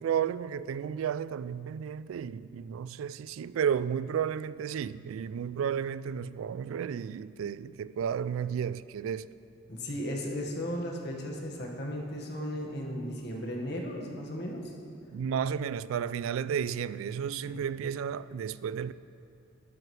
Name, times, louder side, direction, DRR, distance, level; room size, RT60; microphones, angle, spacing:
voice 1, 0.0-9.3 15.1-18.9, right 8 dB, 90° right, 0.3 m, -32 dB
voice 2, 9.7-14.7 17.5-17.6, equal, 55° left, 1.6 m, -35 dB
12.5 x 12.0 x 3.2 m
head